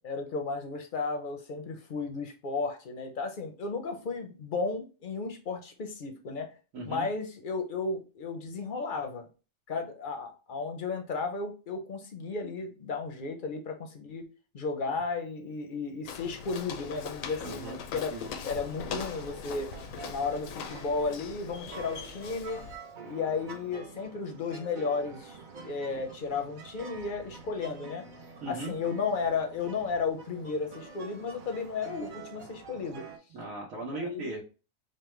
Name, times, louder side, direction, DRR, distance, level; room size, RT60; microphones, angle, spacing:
voice 1, 0.0-6.5 6.8-9.2 9.7-14.2 14.5-18.1 18.4-19.7 20.1-22.6 23.0-28.0 28.5-33.0 34.0-34.4, left 4 dB, 50° left, 5 dB, 0.7 m, -34 dB
voice 2, 6.7-7.1 17.4-17.8 18.1-18.3 28.4-28.7 33.3-34.4, right 2 dB, 90° right, -4 dB, 1.3 m, -38 dB
Walk footsteps, 16.1-22.8, left 7 dB, 80° left, 1.0 m, -41 dB
sound 1, 18.2-33.2, right 5 dB, 50° right, 0.7 m, -47 dB
5.3 x 2.2 x 3.1 m, 0.33 s
omnidirectional pair, 1.4 m